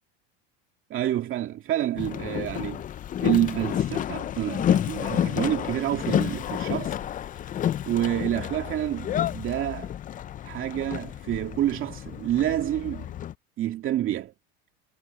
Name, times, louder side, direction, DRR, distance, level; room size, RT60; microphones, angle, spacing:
voice 1, 0.9-2.8 3.2-7.0 7.8-9.9 10.4-13.1 13.6-14.3, right 12 dB, 40° right, 2.3 m, -28 dB
Boat Water vehicle, 2.0-13.3, left 10 dB, 25° left, 0.5 m, -30 dB
supercardioid pair, 130°, 31 cm